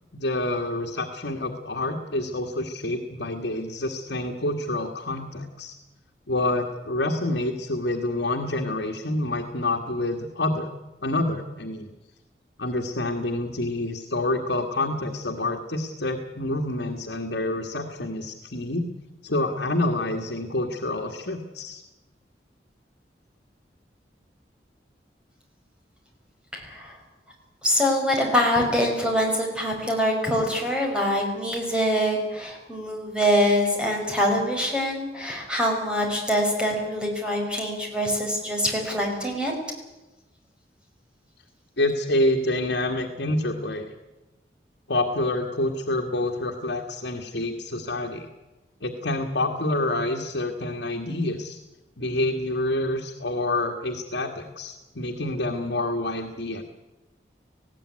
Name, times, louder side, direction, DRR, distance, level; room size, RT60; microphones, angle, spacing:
voice 1, 0.1-5.7 6.3-10.7 11.0-11.9 12.6-18.8 19.2-21.8 41.8-43.9 44.9-48.3 48.8-51.6 52.0-56.6, left 2 dB, 75° left, 2 dB, 1.8 m, -27 dB
voice 2, 26.5-27.0 27.6-39.5, equal, 5° right, 0 dB, 5.0 m, -24 dB
19.5 x 16.0 x 9.7 m, 1.1 s
head